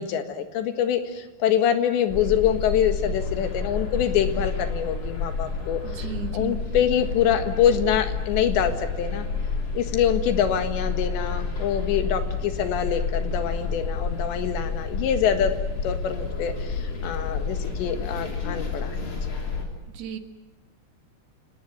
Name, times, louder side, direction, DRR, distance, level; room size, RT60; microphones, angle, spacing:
voice 1, 0.0-6.1 6.3-9.3 9.8-15.6 15.8-19.0, left 9 dB, 85° left, 7 dB, 3.9 m, -25 dB
sound 1, 2.1-19.6, left 4 dB, 35° left, 4.2 m, -29 dB
voice 2, 5.8-6.6 19.9-20.2, right 9 dB, 70° right, 6 dB, 3.5 m, -34 dB
28.0 x 19.0 x 9.2 m, 1.1 s
omnidirectional pair, 5.0 m